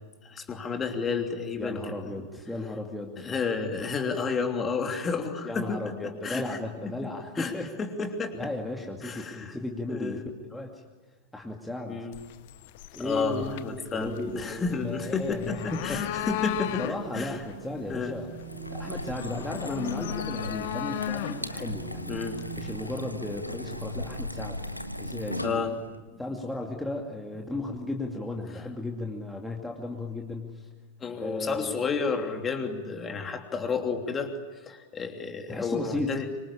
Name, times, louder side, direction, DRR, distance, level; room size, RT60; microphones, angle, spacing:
voice 1, 0.3-2.3 3.2-6.9 7.4-7.5 7.8-8.4 9.0-9.6 9.9-10.2 11.9-12.2 13.0-17.4 17.9-18.1 22.1-22.4 25.4-25.8 26.1-26.2 31.0-34.3 34.7-36.3, left 5 dB, 20° left, 4 dB, 3.1 m, -31 dB
voice 2, 1.6-3.3 5.4-7.7 8.3-10.2 10.5-10.8 11.3-12.1 12.9-16.0 16.8-18.3 18.7-22.2 22.6-25.7 26.2-30.7 31.2-31.8 35.5-36.2, left 2 dB, 5° left, 0 dB, 2.5 m, -35 dB
sound 1, 12.1-22.9, left 14 dB, 50° left, 1.0 m, -37 dB
sound 2, 14.7-25.2, right 7 dB, 35° right, 4.9 m, -47 dB
sound 3, 18.3-26.0, left 1 dB, 90° left, 1.4 m, -37 dB
25.0 x 25.0 x 8.8 m, 1.3 s
figure-of-eight pair, 90°, 0 cm